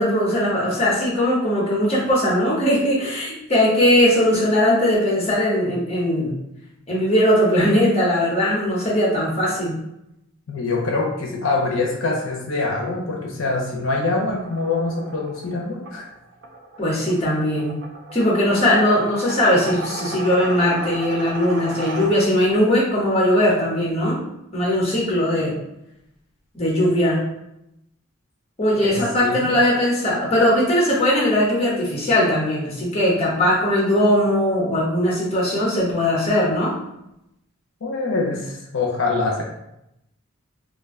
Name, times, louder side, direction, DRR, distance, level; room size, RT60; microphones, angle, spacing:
voice 1, 0.0-6.3 6.9-9.7 16.8-17.8 18.1-24.2 24.5-25.5 26.5-27.2 28.6-36.7, left 1 dB, 30° left, -5 dB, 0.9 m, -19 dB
voice 2, 10.5-16.1 28.8-29.5 37.8-39.4, left 3 dB, 65° left, -2 dB, 0.6 m, -24 dB
sound 1, 14.3-22.6, right 2 dB, 55° right, 0.4 m, -35 dB
2.5 x 2.2 x 3.5 m, 0.83 s
head